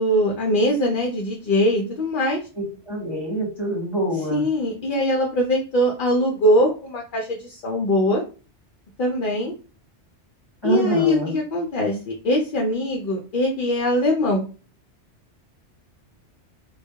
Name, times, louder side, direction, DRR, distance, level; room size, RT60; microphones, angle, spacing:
voice 1, 0.0-2.4 4.3-8.2 9.0-9.5 10.6-14.4, left 1 dB, 60° left, 0 dB, 0.6 m, -22 dB
voice 2, 2.6-4.4 10.6-11.3, right 1 dB, 25° left, -4 dB, 0.9 m, -25 dB
2.2 x 2.2 x 2.7 m, 0.35 s
omnidirectional pair, 1.2 m